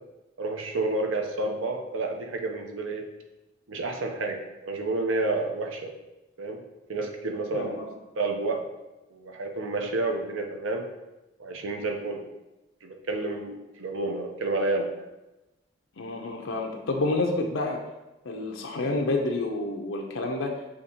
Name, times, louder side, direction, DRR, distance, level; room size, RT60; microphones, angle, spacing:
voice 1, 0.4-3.1 3.7-5.9 6.4-6.6 6.9-7.8 8.2-8.6 9.1-10.8 11.4-12.2 12.8-14.9, right 2 dB, 90° right, 3 dB, 0.6 m, -30 dB
voice 2, 7.5-7.9 16.0-17.8 18.3-20.5, left 2 dB, 85° left, 1 dB, 0.5 m, -29 dB
6.4 x 2.8 x 2.8 m, 1.0 s
head